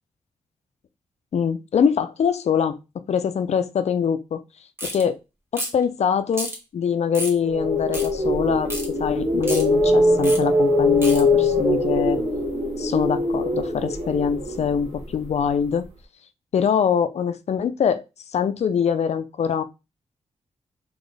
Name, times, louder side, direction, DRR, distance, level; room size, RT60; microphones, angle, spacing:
voice 1, 1.3-2.8 3.1-4.4 4.8-5.2 5.5-8.7 9.0-12.2 12.8-15.8 16.5-18.0 18.3-19.6, left 7 dB, 70° left, 0.5 m, -23 dB
sound 1, 4.8-5.0 5.5-5.8 6.3-6.6 7.1-7.4 7.9-8.1 8.7-8.9 9.4-9.6 10.2-10.4 11.0-11.2, equal, 20° right, 1.4 m, -30 dB
sound 2, 7.4-15.5, left 1 dB, 85° right, 1.1 m, -22 dB
4.1 x 3.0 x 3.3 m
cardioid pair, 90°, 12 cm